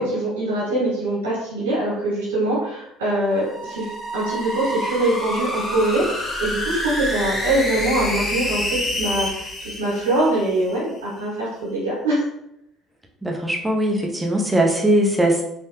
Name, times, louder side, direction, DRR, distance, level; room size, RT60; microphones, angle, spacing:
voice 1, 0.0-3.9 4.1-12.2, right 1 dB, 90° right, -9 dB, 1.5 m, -23 dB
sound 1, 3.3-10.8, left 1 dB, 15° left, 1.0 m, -28 dB
voice 2, 13.2-15.4, right 1 dB, 15° right, 0 dB, 0.7 m, -20 dB
3.2 x 2.8 x 2.2 m, 0.81 s
hypercardioid pair, 70°, 0 cm